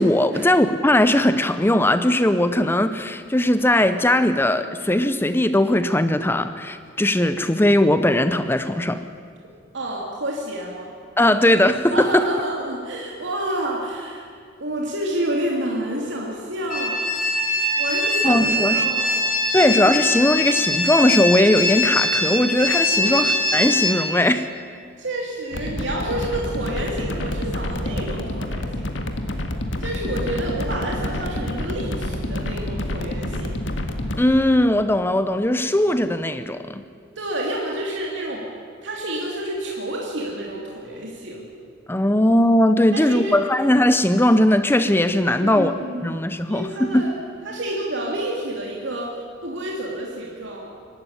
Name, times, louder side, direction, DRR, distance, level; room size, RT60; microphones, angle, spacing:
voice 1, 0.0-9.0 11.2-12.3 18.2-18.9 19.5-24.5 34.2-36.8 41.9-45.7 46.0-47.1, left 1 dB, 10° left, 10 dB, 0.7 m, -19 dB
voice 2, 9.7-10.9 11.9-14.3 14.6-17.4 17.8-19.3 23.0-23.2 25.0-29.1 29.8-33.6 37.2-38.5 38.8-41.5 42.9-43.4 45.4-46.2 46.5-47.1 47.4-49.2 49.4-50.7, right 1 dB, 70° right, -2 dB, 2.9 m, -29 dB
sound 1, 16.7-23.9, left 1 dB, 40° left, 3.7 m, -22 dB
sound 2, 25.5-34.2, left 1 dB, 70° left, 1.7 m, -28 dB
22.5 x 13.0 x 9.7 m, 2.1 s
head